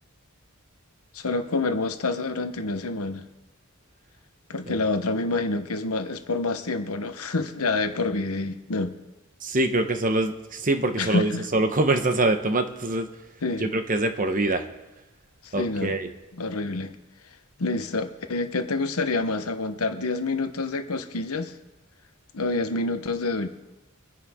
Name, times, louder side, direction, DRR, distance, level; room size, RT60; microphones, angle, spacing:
voice 1, 1.1-3.3 4.5-8.9 11.0-11.5 13.4-13.7 15.4-16.0 16.3-16.9 17.6-21.5 22.3-23.5, left 3 dB, 75° left, 8 dB, 1.1 m, -27 dB
voice 2, 9.4-13.1 13.6-14.6 15.5-16.1, right 2 dB, 40° right, 7 dB, 1.0 m, -24 dB
25.5 x 10.5 x 3.7 m, 1.0 s
head